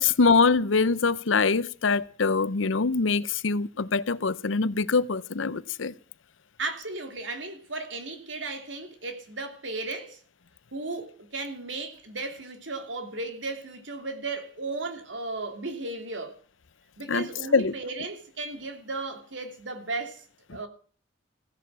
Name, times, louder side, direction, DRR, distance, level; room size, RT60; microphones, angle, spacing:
voice 1, 0.0-5.9 17.1-17.7, left 4 dB, 85° left, 0.8 m, -24 dB
voice 2, 6.6-10.2 10.7-16.4 17.0-20.2 20.5-20.7, right 3 dB, 70° right, 2.8 m, -35 dB
16.0 x 11.0 x 7.5 m
head